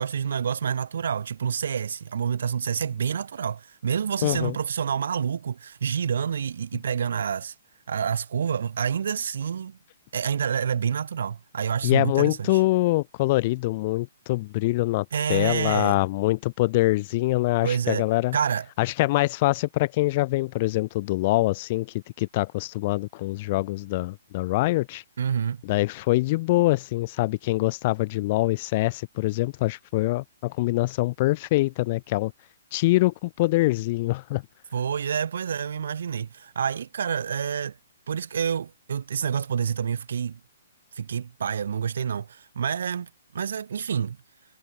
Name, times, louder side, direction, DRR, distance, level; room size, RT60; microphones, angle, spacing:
voice 1, 0.0-7.5 7.9-9.8 10.1-12.6 15.1-16.0 17.6-18.1 18.3-18.7 25.2-25.6 34.7-37.8 38.1-40.4 40.9-44.2, right 7 dB, 55° right, 2.5 m, -28 dB
voice 2, 4.2-4.6 11.8-18.4 18.8-25.0 25.6-32.3 32.7-34.4, left 19 dB, 25° left, 1.1 m, -24 dB
hypercardioid pair, 180°, 0 cm